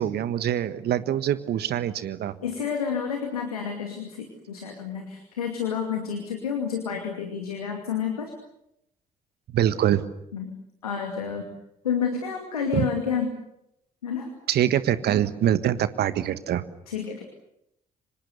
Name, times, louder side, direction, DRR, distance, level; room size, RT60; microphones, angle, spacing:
voice 1, 0.0-2.3 9.5-10.0 12.7-12.9 14.5-16.6, right 11 dB, 60° right, 13 dB, 1.5 m, -24 dB
voice 2, 2.4-8.3 10.3-10.5 10.8-11.5 11.8-13.4 14.0-14.3 16.9-17.3, left 7 dB, 90° left, 3 dB, 2.5 m, -29 dB
30.0 x 25.5 x 6.8 m, 0.80 s
figure-of-eight pair, 45°, 19 cm